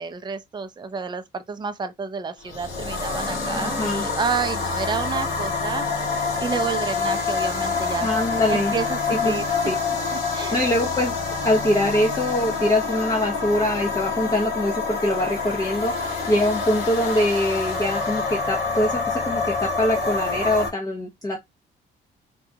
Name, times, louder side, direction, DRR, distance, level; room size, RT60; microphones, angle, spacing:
voice 1, 0.0-5.8 6.4-8.1 8.5-9.4 10.3-10.6, right 5 dB, 20° right, 0.5 m, -29 dB
sound 1, 2.4-20.7, left 4 dB, 55° left, 1.8 m, -27 dB
voice 2, 3.5-4.0 8.0-8.7 9.1-9.7 10.5-11.1 11.4-21.4, left 1 dB, 20° left, 0.7 m, -23 dB
3.7 x 2.3 x 2.7 m
cardioid pair, 90°, 20 cm